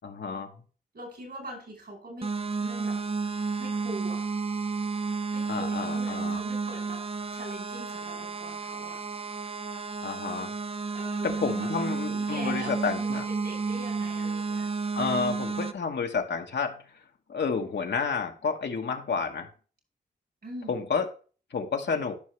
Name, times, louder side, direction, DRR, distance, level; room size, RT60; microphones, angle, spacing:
voice 1, 0.0-0.5 5.5-6.4 10.0-10.5 11.2-13.3 14.9-16.8 17.3-19.5 20.7-21.0 21.5-22.1, left 5 dB, 75° left, 4 dB, 1.3 m, -30 dB
voice 2, 0.9-2.3 2.6-3.0 3.6-4.2 5.3-7.0 7.3-9.0 10.9-11.8 12.2-14.7 20.4-20.8, right 1 dB, 65° right, 3 dB, 4.4 m, -42 dB
sound 1, 2.2-15.7, right 4 dB, 30° right, 0.6 m, -32 dB
13.5 x 5.7 x 3.2 m, 0.38 s
cardioid pair, 45°, 18 cm